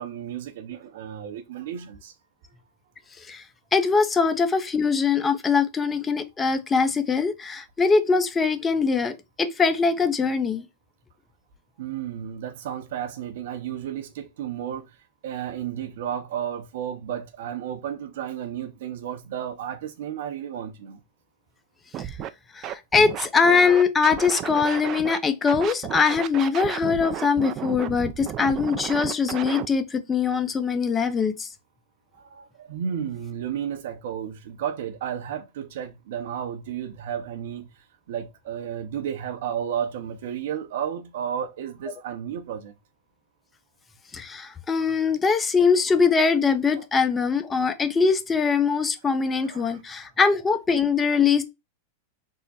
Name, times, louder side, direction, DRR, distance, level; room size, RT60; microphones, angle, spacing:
voice 1, 0.0-2.1 11.8-14.9 15.2-21.0 32.3-37.7 38.1-42.7 46.7-46.9 49.5-49.8, right 9 dB, 70° right, 0.7 m, -32 dB
voice 2, 3.7-10.6 22.0-22.1 22.5-31.5 44.1-51.4, left 5 dB, 20° left, 0.6 m, -22 dB
Scratching (performance technique), 21.9-22.3 22.6-25.2 25.5-29.7, right 11 dB, 40° right, 0.4 m, -33 dB
3.6 x 2.1 x 4.1 m
hypercardioid pair, 105°, 0 cm